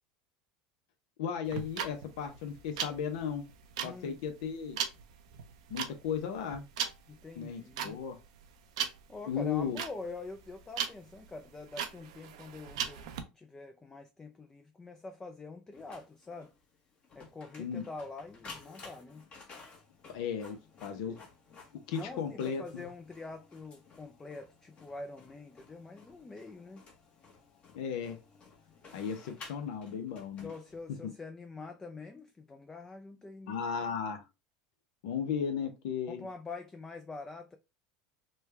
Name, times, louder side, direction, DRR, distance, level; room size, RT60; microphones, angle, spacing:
voice 1, 1.2-3.5 3.8-4.8 5.7-6.7 7.4-8.2 9.3-9.8 17.6-17.9 20.1-21.2 21.9-22.9 27.7-28.2 28.9-30.5 31.0-31.1 33.5-34.2 35.0-36.3, left 7 dB, 75° left, 0.7 m, -35 dB
sound 1, 1.4-13.2, right 8 dB, 85° right, 0.5 m, -38 dB
voice 2, 3.8-4.2 7.1-8.0 9.1-16.5 17.1-19.2 21.0-21.2 21.9-26.8 30.4-33.6 36.1-37.6, left 3 dB, 15° left, 0.4 m, -45 dB
Printer, 15.7-31.1, left 4 dB, 35° left, 1.0 m, -54 dB
3.2 x 2.3 x 3.2 m
supercardioid pair, 105°, 3 cm